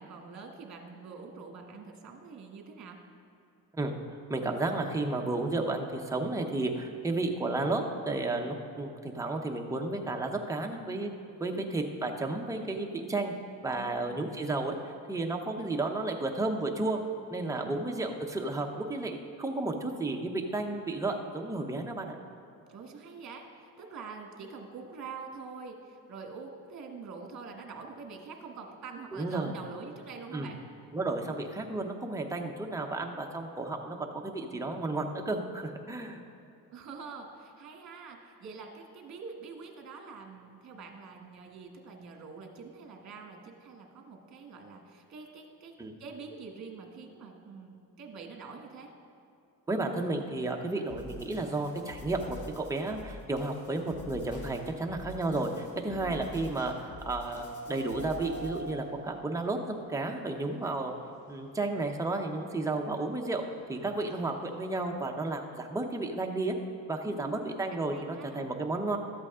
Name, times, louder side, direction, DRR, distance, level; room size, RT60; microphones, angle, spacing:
voice 1, 0.0-3.0 11.3-11.7 13.7-14.3 17.5-17.7 22.7-30.6 36.7-45.7 46.0-48.9 55.9-56.3 67.0-67.5 67.9-68.5, right 4 dB, 50° right, 2 dB, 1.5 m, -45 dB
voice 2, 4.3-11.1 11.4-13.3 13.6-14.7 15.1-17.0 17.3-22.2 29.1-29.5 30.3-30.5 30.9-36.2 45.8-45.9 49.7-60.9 61.3-63.4 63.7-66.5 66.9-69.0, right 2 dB, 10° right, 2 dB, 0.8 m, -32 dB
sound 1, 49.9-64.9, equal, 85° left, 1.8 m, -51 dB
sound 2, 50.9-58.8, left 3 dB, 55° left, 1.2 m, -47 dB
13.0 x 8.2 x 3.7 m, 2.7 s
cardioid pair, 120°, 36 cm